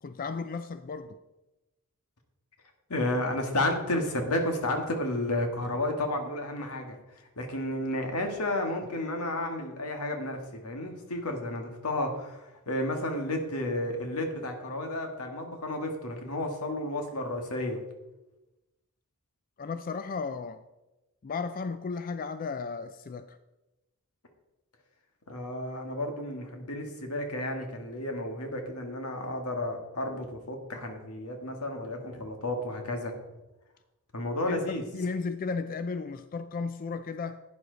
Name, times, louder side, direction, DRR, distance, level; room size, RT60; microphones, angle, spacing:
voice 1, 0.0-1.2 19.6-20.6 21.2-23.4 34.5-37.4, left 4 dB, 40° left, 0.4 m, -34 dB
voice 2, 2.9-7.0 7.4-17.8 25.3-33.1 34.1-34.8, left 1 dB, 85° left, 1.9 m, -32 dB
11.5 x 9.3 x 4.0 m
head